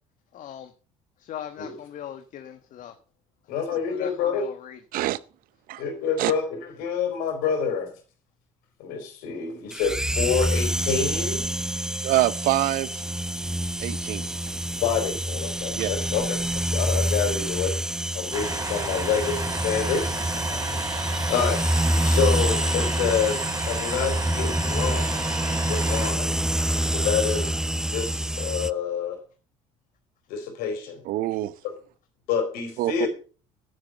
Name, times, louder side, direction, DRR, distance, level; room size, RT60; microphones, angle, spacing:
voice 1, 0.3-0.7 1.2-2.9 3.9-4.8, left 10 dB, 55° left, 1.3 m, -39 dB
voice 2, 3.5-4.5 5.8-7.9 8.8-11.4 14.8-17.8 18.1-20.1 20.4-20.6 21.3-21.7 22.0-25.2 25.7-26.4 26.9-27.6 27.9-29.2 30.3-31.0 32.3-33.1, left 6 dB, 70° left, 4.3 m, -27 dB
sound 1, 9.7-28.7, right 1 dB, 5° right, 0.5 m, -27 dB
voice 3, 12.0-13.0 13.8-14.3 15.7-15.9 31.1-31.5 32.8-33.1, right 15 dB, 65° right, 0.8 m, -25 dB
Truck, 18.3-26.1, right 3 dB, 20° right, 3.4 m, -31 dB
11.5 x 9.1 x 5.5 m
hypercardioid pair, 70°, 16 cm